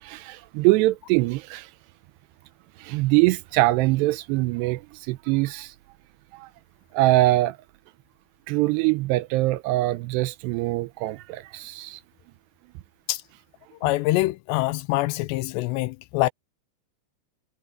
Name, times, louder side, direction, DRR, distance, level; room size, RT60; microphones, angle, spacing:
voice 1, 0.0-1.7 2.8-4.8 5.1-5.7 6.3-6.5 6.9-7.6 8.5-12.0, right 18 dB, 85° right, 2.7 m, -23 dB
voice 2, 13.8-16.3, left 19 dB, 85° left, 2.8 m, -24 dB
omnidirectional pair, 5.0 m